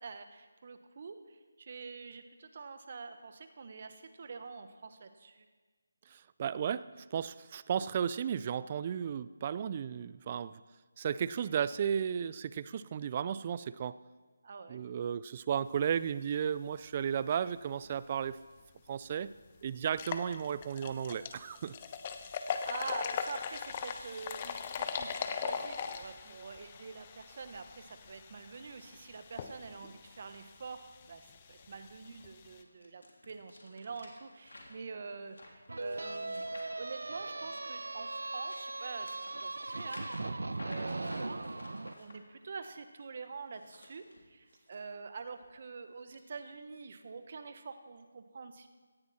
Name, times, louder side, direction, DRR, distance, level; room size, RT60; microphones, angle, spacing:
voice 1, 0.0-5.5 14.4-14.8 22.3-36.4 36.8-40.3 40.6-41.5 42.0-48.7, right 4 dB, 45° right, 9 dB, 1.3 m, -46 dB
voice 2, 6.1-10.6 11.0-14.0 14.7-18.4 18.9-19.3 19.6-21.7 40.2-40.3, right 8 dB, 30° right, 17 dB, 0.4 m, -34 dB
sound 1, 18.6-18.7 19.1-19.2 19.8-32.6, left 7 dB, 30° left, 0.9 m, -40 dB
sound 2, 31.5-37.6 38.1-42.1 43.4-44.8 45.2-45.5 46.1-46.2, left 2 dB, 80° left, 3.4 m, -54 dB
sound 3, 35.7-41.9, right 2 dB, 80° right, 0.7 m, -39 dB
17.5 x 14.0 x 4.3 m, 1.4 s
figure-of-eight pair, 160°, 0 cm